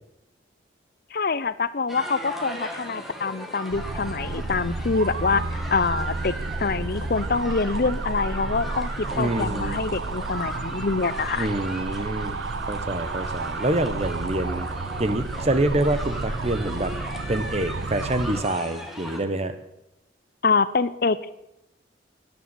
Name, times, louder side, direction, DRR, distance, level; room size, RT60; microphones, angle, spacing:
voice 1, 1.1-6.3 6.6-11.5 20.4-21.3, left 4 dB, 55° left, 16 dB, 0.6 m, -25 dB
sound 1, 1.9-19.2, equal, ahead, 2.0 m, -38 dB
sound 2, 3.7-18.4, right 3 dB, 85° right, 0.8 m, -31 dB
voice 2, 9.2-9.8 11.4-12.4 12.7-14.7 15.0-17.0 17.3-19.6, right 1 dB, 35° right, 11 dB, 1.2 m, -26 dB
13.0 x 10.5 x 9.1 m, 0.89 s
head